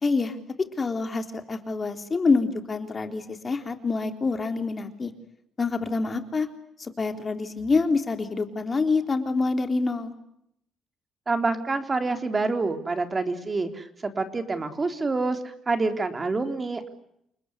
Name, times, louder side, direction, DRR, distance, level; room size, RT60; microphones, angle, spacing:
voice 1, 0.0-5.1 5.6-6.5 6.8-10.1, left 4 dB, 35° left, 7 dB, 3.7 m, -26 dB
voice 2, 11.3-16.9, right 3 dB, 30° right, 7 dB, 3.9 m, -27 dB
29.5 x 20.0 x 9.8 m, 0.76 s
cardioid pair, 90°, 0 cm